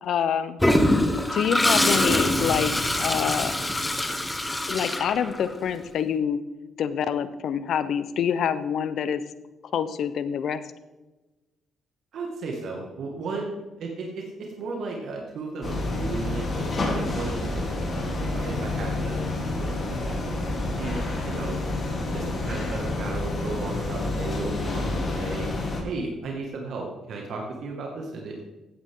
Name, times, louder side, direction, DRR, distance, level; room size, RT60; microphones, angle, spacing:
voice 1, 0.0-0.6 1.3-2.7 3.0-3.5 4.7-6.4 6.8-9.2 9.7-10.6, left 8 dB, 70° left, 13 dB, 0.8 m, -26 dB
Toilet flush, 0.6-5.7, left 1 dB, 10° left, 1.4 m, -24 dB
voice 2, 12.1-19.2 19.6-19.7 20.0-20.1 20.8-21.6 22.1-25.5 25.8-28.4, right 3 dB, 70° right, 0 dB, 2.2 m, -34 dB
sound 1, 15.6-25.8, left 2 dB, 40° left, 3.6 m, -29 dB
15.5 x 9.1 x 3.9 m, 1.1 s
cardioid pair, 90°, 0 cm